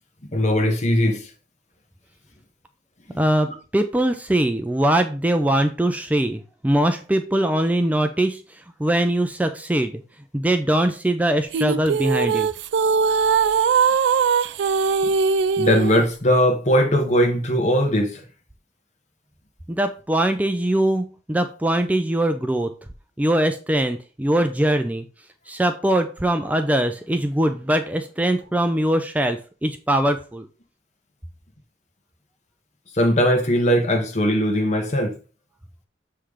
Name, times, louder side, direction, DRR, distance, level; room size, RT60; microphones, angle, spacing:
voice 1, 0.3-1.3 3.1-3.2 15.6-18.2 32.9-35.1, equal, 40° left, 1.3 m, -19 dB
voice 2, 3.1-8.4 8.8-10.0 10.3-12.5 19.7-22.7 23.2-25.0 25.5-30.4, right 1 dB, 10° right, 0.4 m, -22 dB
sound 1, 11.5-16.1, right 5 dB, 70° right, 0.3 m, -20 dB
7.5 x 3.3 x 4.9 m
head